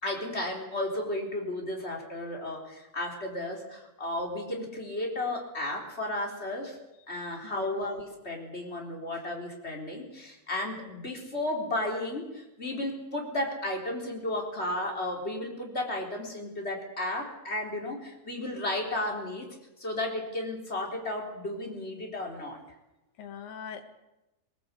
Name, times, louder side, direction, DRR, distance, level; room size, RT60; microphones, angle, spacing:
voice 1, 0.0-6.8 7.1-19.5 19.8-22.6, left 1 dB, 20° left, 1 dB, 3.9 m, -33 dB
voice 2, 7.1-7.8 23.2-23.8, left 7 dB, 90° left, 7 dB, 3.4 m, -43 dB
19.5 x 19.0 x 8.3 m, 0.96 s
omnidirectional pair, 3.8 m